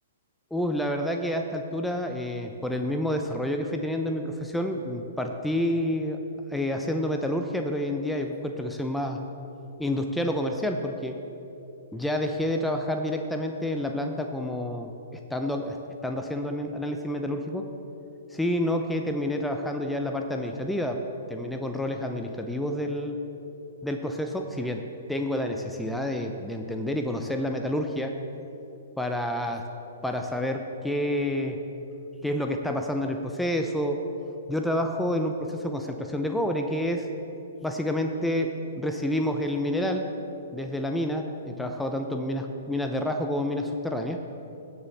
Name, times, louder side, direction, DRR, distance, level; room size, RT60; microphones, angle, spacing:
voice 1, 0.5-6.2 6.5-9.2 9.8-11.2 11.9-15.8 16.0-17.7 18.3-21.0 21.3-23.2 23.8-24.8 25.1-28.2 29.0-29.7 30.0-31.6 32.2-34.0 34.5-37.1 37.6-40.1 40.5-44.2, left 1 dB, 5° left, 4 dB, 0.6 m, -29 dB
18.0 x 7.0 x 3.4 m, 2.9 s
hypercardioid pair, 130°, 0 cm